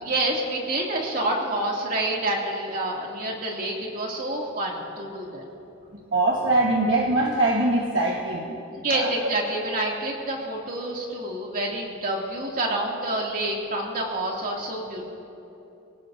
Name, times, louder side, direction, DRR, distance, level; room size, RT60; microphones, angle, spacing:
voice 1, 0.0-5.4 8.7-15.0, right 1 dB, 45° right, -2 dB, 2.5 m, -28 dB
voice 2, 5.9-8.6 8.9-9.3, right 2 dB, 65° right, -2 dB, 1.4 m, -23 dB
25.5 x 17.0 x 2.7 m, 2.9 s
head